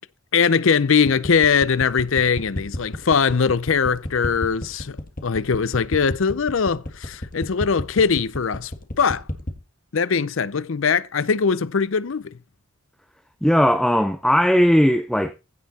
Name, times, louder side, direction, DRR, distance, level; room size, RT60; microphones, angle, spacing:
voice 1, 0.3-8.7 9.0-9.2 9.9-12.3, left 6 dB, 65° left, 0.6 m, -21 dB
sound 1, 1.1-9.6, left 1 dB, 40° left, 1.7 m, -31 dB
voice 2, 13.4-15.3, equal, 5° left, 0.6 m, -18 dB
15.5 x 5.6 x 4.1 m
head